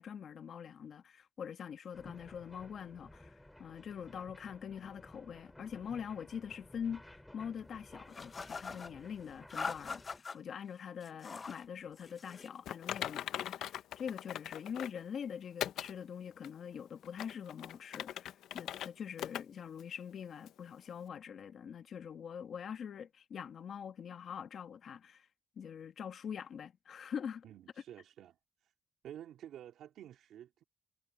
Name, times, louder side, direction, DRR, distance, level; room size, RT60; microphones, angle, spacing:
voice 1, 0.0-25.3 25.6-27.4, left 7 dB, 60° left, 1.3 m, -44 dB
sound 1, 1.9-10.2, left 1 dB, 10° left, 5.1 m, -56 dB
sound 2, 8.1-8.9 9.5-10.4 11.0-11.6 12.0-12.6, left 4 dB, 35° left, 0.8 m, -42 dB
Typing, 12.7-15.0 15.6-15.9 16.4-16.5 17.0-18.9 19.2-19.4 19.8-19.9 20.5-20.6, left 11 dB, 80° left, 1.0 m, -40 dB
voice 2, 27.4-28.7 29.0-30.6, right 11 dB, 75° right, 2.7 m, -51 dB
cardioid pair, 90°, 0 cm